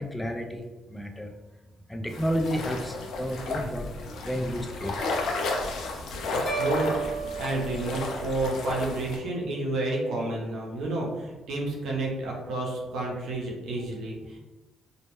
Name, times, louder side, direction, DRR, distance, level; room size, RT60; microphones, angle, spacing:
voice 1, 0.0-1.3 1.9-3.9 4.2-5.2, equal, 10° left, 3 dB, 0.4 m, -31 dB
sound 1, 2.1-9.2, left 2 dB, 75° left, 0.4 m, -33 dB
voice 2, 6.3-6.9 7.4-14.4, right 2 dB, 80° right, -2 dB, 0.6 m, -30 dB
sound 2, 6.5-8.7, right 6 dB, 50° left, 0.8 m, -34 dB
2.1 x 2.1 x 2.9 m, 1.1 s
cardioid pair, 90°, 0 cm